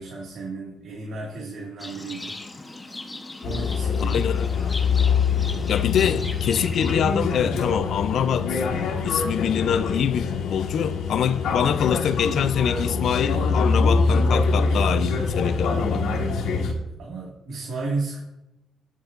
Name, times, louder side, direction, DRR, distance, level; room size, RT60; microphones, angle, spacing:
voice 1, 0.0-2.3 3.4-4.2 17.0-18.2, right 3 dB, 65° right, 1.9 m, -33 dB
Livestock farm animals working animals, 1.8-6.9, left 2 dB, 20° left, 1.0 m, -38 dB
sound 1, 3.4-16.7, left 4 dB, 85° left, 1.5 m, -24 dB
voice 2, 4.0-4.7 5.7-8.6 9.0-16.0, left 8 dB, 65° left, 0.5 m, -25 dB
17.5 x 7.5 x 2.5 m
cardioid pair, 90°, 0 cm